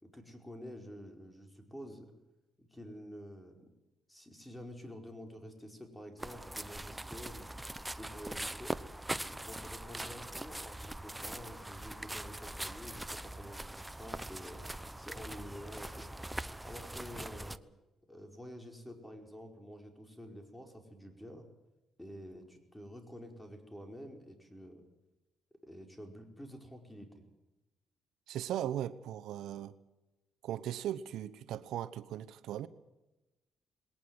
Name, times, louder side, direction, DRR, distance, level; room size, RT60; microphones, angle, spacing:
voice 1, 0.0-2.1 2.6-3.7 4.1-7.5 7.9-8.8 9.3-14.6 15.0-16.1 16.6-17.6 18.1-21.5 22.0-24.8 25.6-27.2, equal, 10° left, 5.1 m, -49 dB
sound 1, 6.2-17.6, right 1 dB, 10° right, 0.8 m, -42 dB
voice 2, 28.3-29.7 30.4-32.7, right 11 dB, 85° right, 0.9 m, -38 dB
21.0 x 18.5 x 7.9 m
cardioid pair, 90°, 0 cm